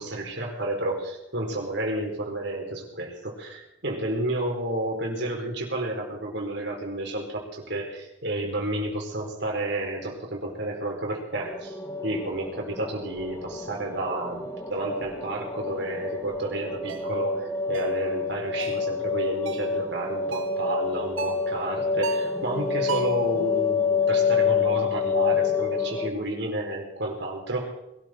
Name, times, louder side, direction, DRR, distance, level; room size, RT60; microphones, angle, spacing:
voice 1, 0.0-11.8 12.0-27.7, right 1 dB, 55° right, 0 dB, 4.5 m, -31 dB
sound 1, 11.3-26.1, left 5 dB, 15° left, 1.6 m, -28 dB
sound 2, 16.9-17.1 17.7-18.0 18.6-18.9 19.5-19.7 20.3-20.6 21.2-21.5 22.0-22.4 22.9-23.2, right 5 dB, 80° right, 1.1 m, -35 dB
21.5 x 13.0 x 4.5 m, 0.89 s
head